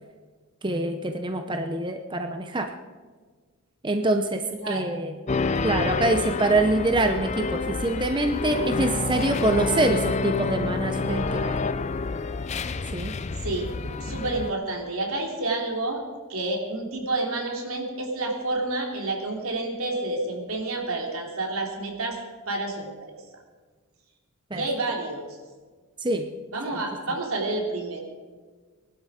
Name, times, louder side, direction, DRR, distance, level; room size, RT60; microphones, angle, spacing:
voice 1, 0.6-2.7 3.8-4.4 4.7-5.1 5.6-11.6 12.9-13.1 24.5-24.6 26.0-26.3, right 2 dB, 20° right, 5 dB, 0.8 m, -25 dB
voice 2, 4.6-5.0 13.4-13.7 14.0-16.0 16.3-22.2 22.4-23.2 24.5-25.3 26.5-28.0, right 2 dB, 80° right, 0 dB, 3.4 m, -29 dB
sound 1, 5.3-14.5, left 4 dB, 30° left, 0.4 m, -28 dB
20.0 x 12.0 x 5.1 m, 1.5 s
head